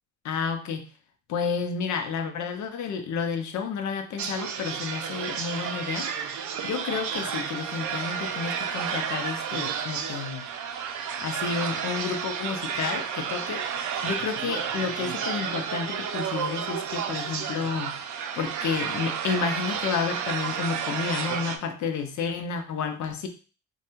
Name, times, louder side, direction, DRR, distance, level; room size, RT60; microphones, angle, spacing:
voice 1, 0.2-0.8 1.3-6.1 6.6-10.4 11.2-13.7 14.0-18.0 18.4-23.3, left 6 dB, 70° left, 6 dB, 0.6 m, -31 dB
sound 1, 4.2-21.6, right 7 dB, 70° right, 0.5 m, -31 dB
3.1 x 2.2 x 3.0 m, 0.36 s
cardioid pair, 90°, 30 cm